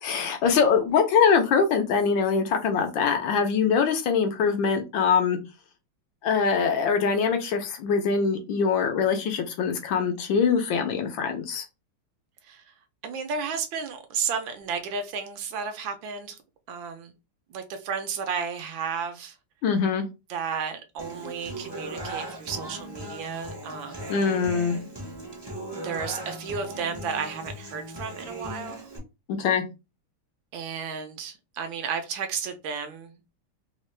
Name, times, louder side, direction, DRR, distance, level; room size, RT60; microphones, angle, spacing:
voice 1, 0.0-5.4 6.2-11.6 19.6-20.0 24.1-24.8 29.4-29.6, left 6 dB, 75° left, 1.3 m, -23 dB
voice 2, 12.4-12.7 13.0-16.4 16.7-17.1 17.5-19.4 20.3-24.1 25.8-28.9 30.5-33.2, right 6 dB, 75° right, 1.3 m, -33 dB
Human voice / Acoustic guitar, 21.0-29.0, right 1 dB, 25° right, 0.5 m, -38 dB
3.6 x 2.4 x 3.1 m
omnidirectional pair, 2.3 m